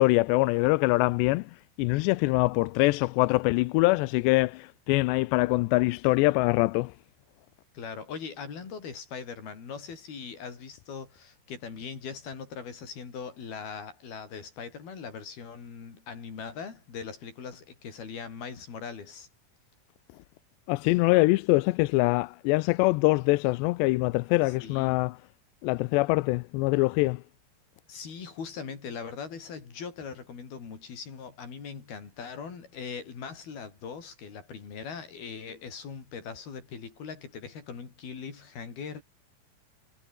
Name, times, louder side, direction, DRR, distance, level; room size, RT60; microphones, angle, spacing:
voice 1, 0.0-1.5 1.8-6.9 20.7-25.2 25.6-27.2, left 22 dB, 85° left, 2.8 m, -24 dB
voice 2, 7.7-19.3 24.5-25.0 27.9-39.0, left 6 dB, 60° left, 6.8 m, -40 dB
omnidirectional pair, 5.0 m